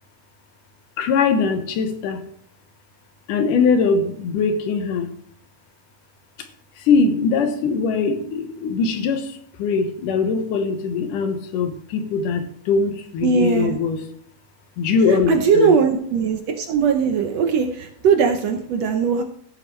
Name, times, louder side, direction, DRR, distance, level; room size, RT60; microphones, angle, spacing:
voice 1, 1.0-2.2 3.3-5.1 6.8-14.0 14.8-15.7, left 5 dB, 80° left, 7 dB, 2.7 m, -21 dB
voice 2, 13.2-13.8 15.1-19.2, right 6 dB, 70° right, 5 dB, 1.7 m, -19 dB
16.0 x 7.7 x 3.2 m, 0.65 s
omnidirectional pair, 3.7 m